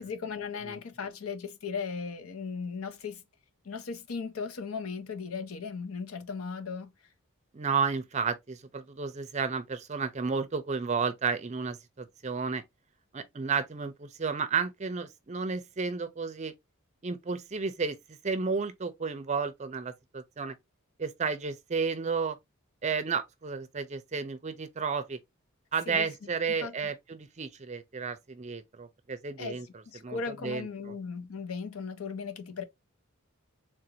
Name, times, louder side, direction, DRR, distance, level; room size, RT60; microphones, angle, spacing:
voice 1, 0.0-3.2 3.6-6.9 25.9-26.1 26.5-26.7 29.4-29.6 29.9-32.6, left 5 dB, 80° left, 0.6 m, -37 dB
voice 2, 7.5-12.6 13.1-16.5 17.0-18.0 18.2-20.6 21.0-22.4 22.8-25.2 25.7-29.7 30.0-30.9, right 5 dB, 30° right, 0.5 m, -32 dB
3.6 x 2.5 x 2.8 m
head